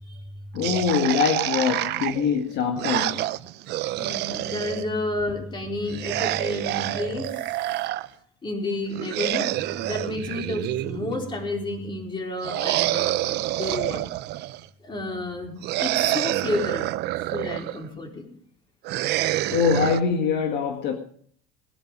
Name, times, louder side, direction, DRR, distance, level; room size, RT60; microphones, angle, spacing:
voice 1, 0.5-3.2 19.5-21.0, left 6 dB, 60° left, 1.7 m, -23 dB
sound 1, 0.6-4.9 5.9-8.1 8.9-11.3 12.4-14.7 15.6-17.8 18.8-20.0, right 16 dB, 60° right, 0.8 m, -27 dB
voice 2, 3.8-7.4 8.4-14.0 14.8-16.8 17.3-18.3, left 2 dB, 25° left, 4.3 m, -31 dB
19.5 x 10.5 x 5.3 m
supercardioid pair, 110°, 20 cm